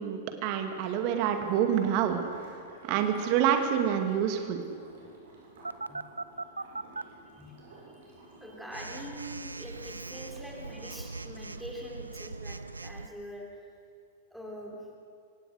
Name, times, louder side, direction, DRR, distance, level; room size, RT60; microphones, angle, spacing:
voice 1, 0.0-4.6, right 9 dB, 40° right, 6 dB, 2.4 m, -28 dB
sound 1, 0.7-11.6, right 2 dB, 60° right, 7.9 m, -54 dB
Telephone, 5.6-7.0 8.7-13.1, right 3 dB, 80° right, 0.6 m, -40 dB
voice 2, 7.9-13.5 14.3-14.8, equal, ahead, -1 dB, 3.7 m, -44 dB
25.0 x 17.5 x 6.6 m, 2.3 s
figure-of-eight pair, 100°, 0 cm